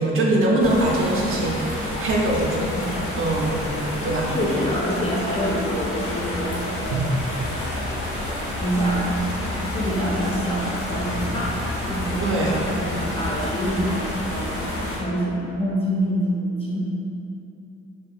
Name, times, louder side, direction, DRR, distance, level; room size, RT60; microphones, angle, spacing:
voice 1, 0.0-2.7 3.2-3.6 4.0-4.3 6.9-7.0 12.2-12.6, right 1 dB, 45° right, -2 dB, 0.4 m, -22 dB
sound 1, 0.6-15.0, left 1 dB, 85° left, 0.7 m, -29 dB
voice 2, 4.3-6.7 8.6-9.1 9.6-11.6 11.9-14.7 15.0-16.8, equal, 20° left, -5 dB, 0.3 m, -26 dB
2.4 x 2.3 x 2.6 m, 2.8 s
cardioid pair, 90°, 30 cm